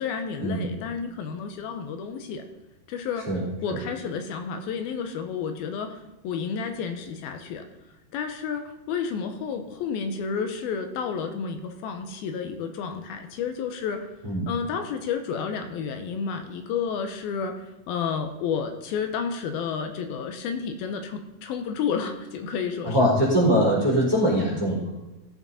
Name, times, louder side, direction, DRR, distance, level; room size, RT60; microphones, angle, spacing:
voice 1, 0.0-2.4 2.9-3.3 3.6-6.0 6.2-7.6 8.1-14.1 14.5-23.0, left 6 dB, 80° left, 7 dB, 2.7 m, -31 dB
voice 2, 22.8-24.9, equal, 10° right, -6 dB, 3.6 m, -22 dB
16.0 x 7.4 x 4.1 m, 1.0 s
omnidirectional pair, 4.3 m